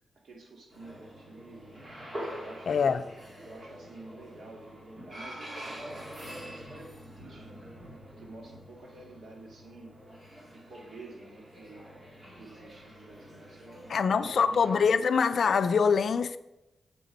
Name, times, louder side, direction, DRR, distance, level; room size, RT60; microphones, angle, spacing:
voice 1, 0.2-1.9 2.3-3.1 3.4-7.7 8.2-9.9 10.5-11.9 12.3-14.6, right 2 dB, 75° right, 2.2 m, -49 dB
sound 1, 0.7-14.9, equal, 30° right, 2.3 m, -46 dB
voice 2, 2.7-3.0 13.9-16.4, left 6 dB, 65° left, 0.4 m, -24 dB
8.2 x 6.7 x 5.2 m
wide cardioid pair, 155°, 0 cm